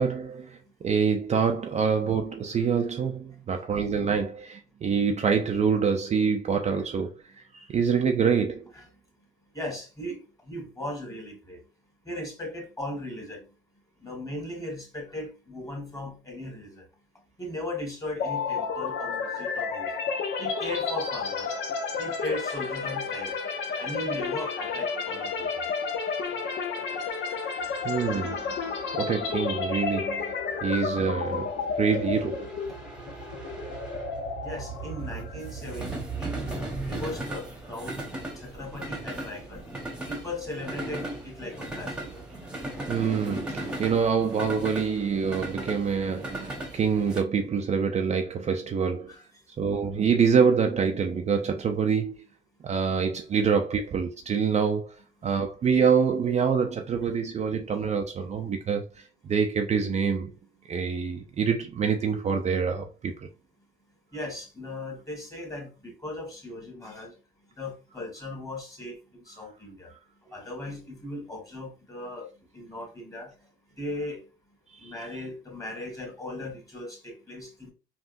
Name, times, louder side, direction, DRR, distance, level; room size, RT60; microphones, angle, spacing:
voice 1, 0.0-8.7 27.8-28.5 28.9-32.5 42.9-49.1 49.6-52.1 52.6-60.3 60.6-63.3 74.7-74.9, right 6 dB, 35° right, 0.4 m, -26 dB
voice 2, 9.5-10.2 10.5-11.6 12.0-13.4 14.0-16.8 17.4-19.9 20.4-21.5 22.0-23.3 23.8-25.5 34.4-35.9 36.2-38.0 38.4-39.6 40.1-42.2 49.1-49.2 57.0-57.1 64.1-67.1 67.6-69.9 70.3-72.3 72.5-73.3 73.8-74.2 74.8-77.7, left 1 dB, 15° left, 1.7 m, -37 dB
sound 1, 18.2-36.0, left 5 dB, 65° left, 0.7 m, -31 dB
sound 2, 27.7-47.2, right 2 dB, 5° right, 1.0 m, -37 dB
3.5 x 2.4 x 2.5 m
cardioid pair, 85°, 19 cm